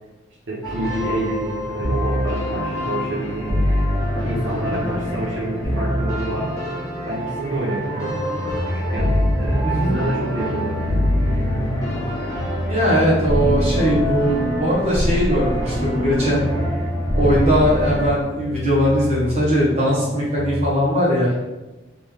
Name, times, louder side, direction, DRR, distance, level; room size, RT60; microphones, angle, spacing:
voice 1, 0.5-3.7 4.2-6.5 7.0-8.2 8.7-10.9, right 1 dB, 75° right, -5 dB, 0.8 m, -28 dB
sound 1, 0.6-18.1, equal, 15° left, 0.9 m, -24 dB
sound 2, 8.4-20.7, left 2 dB, 75° left, 0.5 m, -30 dB
voice 2, 9.6-10.0 12.7-16.5 17.1-21.4, equal, 35° right, -7 dB, 1.4 m, -20 dB
3.2 x 3.0 x 3.5 m, 1.1 s
head